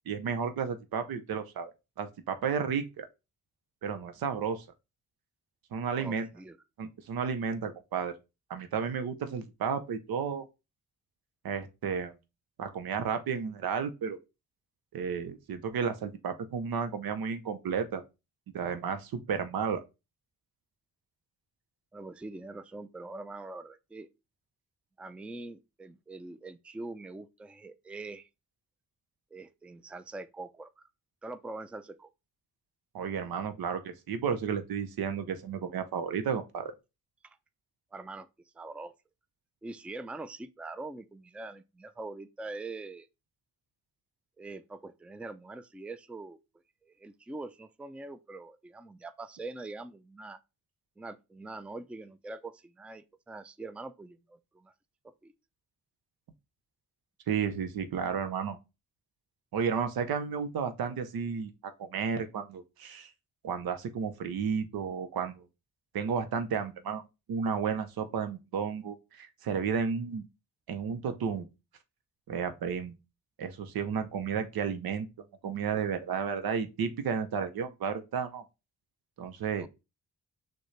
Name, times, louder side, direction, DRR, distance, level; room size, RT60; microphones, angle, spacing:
voice 1, 0.1-1.7 2.0-3.1 3.8-4.6 5.7-6.3 6.8-8.1 8.5-10.5 11.4-12.1 12.6-14.2 14.9-18.0 18.5-19.8 32.9-36.7 57.3-58.6 59.5-63.1 63.4-65.5 65.9-67.0 67.3-70.3 70.7-71.5 72.3-72.9 73.4-75.1 75.4-78.4 79.2-79.7, right 6 dB, 80° right, 0.7 m, -32 dB
voice 2, 6.0-6.6 21.9-24.1 25.0-28.3 29.3-30.9 31.2-32.1 37.2-37.4 37.9-38.3 38.5-38.9 39.6-43.1 44.4-46.4 46.8-50.4 51.0-54.7 55.2-55.3 79.6-79.7, right 2 dB, 5° right, 0.3 m, -43 dB
6.2 x 2.2 x 3.1 m
cardioid pair, 50°, 35 cm